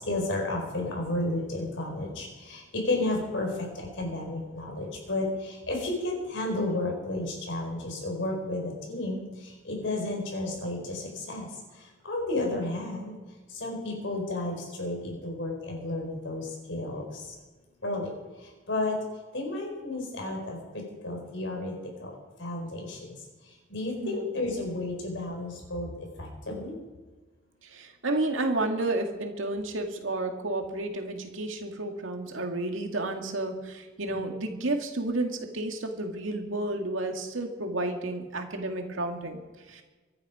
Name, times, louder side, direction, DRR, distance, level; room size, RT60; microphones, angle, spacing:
voice 1, 0.0-13.1 13.5-17.3 17.8-18.1 18.4-19.0 19.3-23.2 23.5-26.7 34.1-34.3, left 2 dB, 65° left, 1 dB, 4.8 m, -32 dB
voice 2, 27.7-39.4 39.7-39.8, right 2 dB, 90° right, 4 dB, 2.2 m, -31 dB
24.5 x 9.5 x 5.0 m, 1.3 s
head